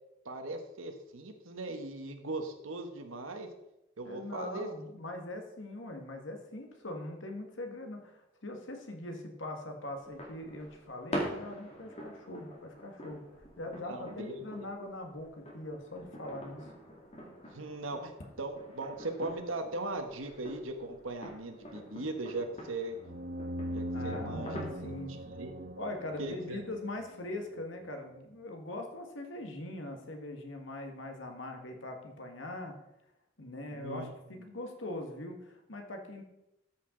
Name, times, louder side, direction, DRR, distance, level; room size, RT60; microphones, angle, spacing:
voice 1, 0.2-3.5 4.0-4.7 13.8-14.4 17.5-23.0 23.7-24.9 25.3-25.6 26.2-26.6 33.7-34.1, right 2 dB, 90° right, 6 dB, 1.3 m, -39 dB
voice 2, 4.0-13.2 13.6-16.7 23.9-25.1 25.8-32.8 33.4-36.2, left 1 dB, 70° left, 4 dB, 1.6 m, -41 dB
sound 1, 10.0-25.0, equal, 30° left, 2.2 m, -45 dB
sound 2, 23.0-27.5, right 1 dB, 50° right, 1.1 m, -41 dB
13.0 x 5.9 x 3.8 m, 0.88 s
head